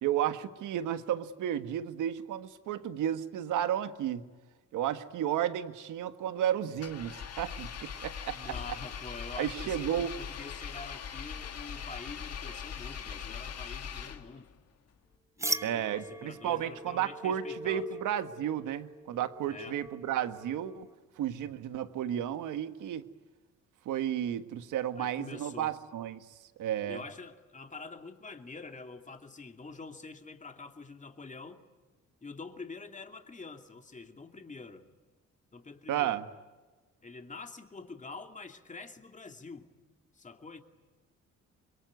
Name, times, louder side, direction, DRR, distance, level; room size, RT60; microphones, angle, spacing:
voice 1, 0.0-4.3 4.7-8.5 9.4-10.2 15.6-20.9 21.2-23.1 23.8-26.2 26.6-27.0 35.9-36.2, right 10 dB, 85° right, 10 dB, 1.6 m, -33 dB
Engine, 6.8-14.5, left 7 dB, 55° left, 2.2 m, -41 dB
voice 2, 8.3-14.5 15.4-17.9 19.4-19.8 25.0-25.8 26.9-31.6 32.2-34.9 35.5-36.2 37.0-39.7 40.1-40.6, left 4 dB, 25° left, 5 dB, 2.6 m, -46 dB
sound 1, 15.4-20.9, right 2 dB, 10° right, 1.1 m, -41 dB
26.5 x 22.5 x 9.5 m, 1.3 s
cardioid pair, 90°, 30 cm